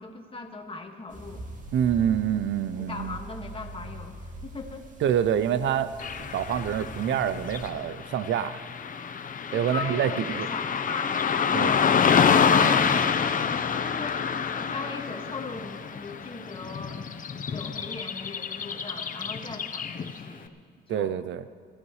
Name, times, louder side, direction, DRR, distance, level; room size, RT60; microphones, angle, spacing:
voice 1, 0.0-1.5 2.8-4.9 9.5-13.0 13.8-17.1 17.5-20.5 20.9-21.2, left 3 dB, 25° left, 3 dB, 1.8 m, -39 dB
sound 1, 1.1-7.7, right 1 dB, 40° right, 2.1 m, -43 dB
voice 2, 1.7-3.2 5.0-5.9 6.3-8.6 9.5-10.5 11.5-11.7 20.9-21.4, right 9 dB, 70° right, 14 dB, 0.6 m, -26 dB
Car passing by / Traffic noise roadway noise, 6.0-20.3, left 6 dB, 40° left, 0.8 m, -27 dB
26.0 x 14.5 x 3.2 m, 2.1 s
cardioid pair, 90°, 20 cm